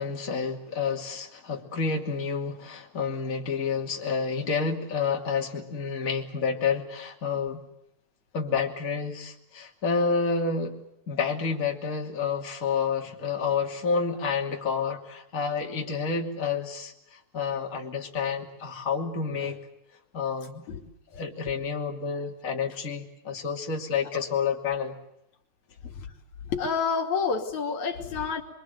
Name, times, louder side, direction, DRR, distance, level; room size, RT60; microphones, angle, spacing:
voice 1, 0.0-7.6 8.3-10.7 11.1-19.6 20.1-20.7 21.1-24.9, left 5 dB, 25° left, 1 dB, 2.8 m, -29 dB
voice 2, 26.4-28.4, left 5 dB, 60° left, 3 dB, 3.8 m, -29 dB
24.5 x 24.5 x 8.0 m, 0.81 s
omnidirectional pair, 3.9 m